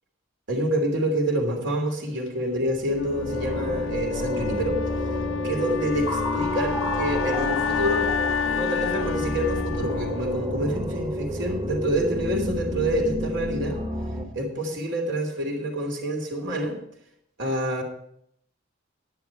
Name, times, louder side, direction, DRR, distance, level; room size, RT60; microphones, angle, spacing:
voice 1, 0.5-4.8 5.4-8.2 8.4-13.8 14.3-16.8 17.4-17.8, right 1 dB, 60° right, 2 dB, 3.1 m, -27 dB
sound 1, 2.8-14.2, equal, 20° right, 1.6 m, -30 dB
Wind instrument woodwind instrument, 2.9-11.0, left 8 dB, 70° left, 0.5 m, -30 dB
11.0 x 10.5 x 4.7 m, 0.72 s
head